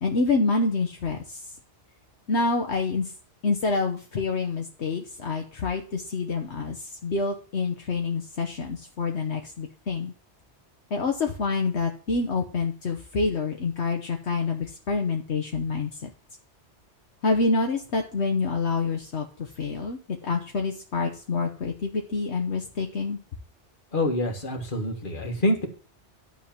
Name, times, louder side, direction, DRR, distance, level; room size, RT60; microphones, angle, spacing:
voice 1, 0.0-1.5 2.3-3.1 3.4-10.1 10.9-16.1 17.2-23.2, left 4 dB, 70° left, 2 dB, 1.3 m, -27 dB
voice 2, 23.9-25.7, left 1 dB, 45° left, 3 dB, 1.8 m, -26 dB
11.5 x 3.8 x 7.2 m, 0.38 s
omnidirectional pair, 1.2 m